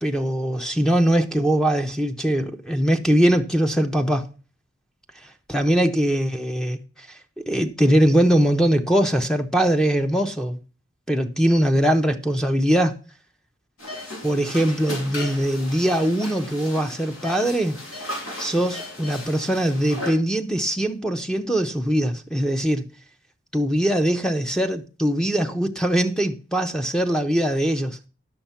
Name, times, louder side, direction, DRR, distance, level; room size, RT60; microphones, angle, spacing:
voice 1, 0.0-4.3 5.5-6.8 7.4-10.6 11.1-12.9 14.2-17.8 18.4-22.8 23.5-28.0, right 1 dB, 5° left, 0.7 m, -21 dB
sound 1, 13.8-20.1, left 1 dB, 85° left, 3.8 m, -36 dB
10.5 x 6.4 x 5.7 m
head